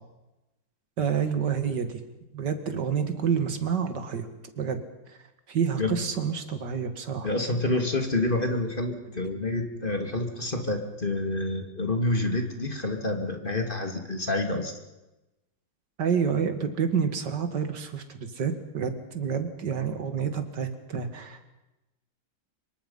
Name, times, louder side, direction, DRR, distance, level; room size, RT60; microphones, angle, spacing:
voice 1, 1.0-2.0 2.3-4.3 4.6-4.8 5.5-7.3 16.0-21.5, right 7 dB, 55° right, 8 dB, 2.6 m, -28 dB
voice 2, 7.2-14.7, left 2 dB, 25° left, 5 dB, 2.6 m, -28 dB
26.0 x 23.0 x 5.6 m, 0.99 s
omnidirectional pair, 2.3 m